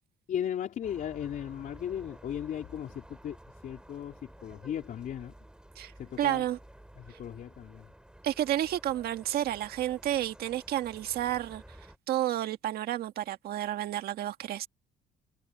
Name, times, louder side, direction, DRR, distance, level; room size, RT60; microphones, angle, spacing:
voice 1, 0.3-3.4 3.6-5.3 6.0-6.5 7.0-7.9, left 9 dB, 55° left, 3.9 m, -36 dB
sound 1, 0.8-12.0, right 1 dB, 5° right, 4.0 m, -52 dB
voice 2, 6.2-6.6 8.2-11.6 12.1-14.7, right 12 dB, 65° right, 1.7 m, -31 dB
cardioid pair, 110°, 17 cm